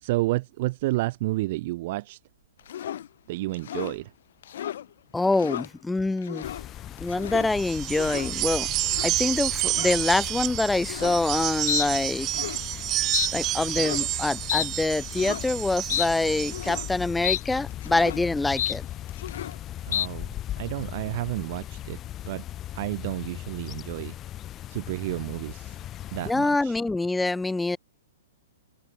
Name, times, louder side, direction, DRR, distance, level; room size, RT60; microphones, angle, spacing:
voice 1, 0.0-2.2 3.3-4.1 19.8-20.3 20.6-22.0 22.3-22.4 22.7-24.1 24.7-25.8 26.1-26.8, right 19 dB, 45° right, 2.3 m, -30 dB
sound 1, 2.7-3.1 3.5-4.0 4.4-4.8 5.2-5.7 6.2-6.6 7.0-7.5 7.8-8.3 8.8-9.1 9.6-10.0 10.8-11.2 11.7-11.9 12.2-12.6 13.1-13.3 13.7-14.1 14.5-14.7 15.1-15.4 15.9-16.1 16.5-16.9 17.2-17.4 17.7-18.2 18.6-18.8 19.1-19.6 19.9-20.1, left 11 dB, 55° left, 4.3 m, -31 dB
voice 2, 5.1-6.5 7.0-8.7 9.0-12.3 13.3-18.9 26.3-27.8, left 2 dB, 5° left, 0.4 m, -25 dB
sound 2, 6.4-26.3, left 12 dB, 25° left, 1.6 m, -39 dB
sound 3, 7.5-16.9, right 17 dB, 30° right, 1.0 m, -30 dB
figure-of-eight pair, 115°, 0 cm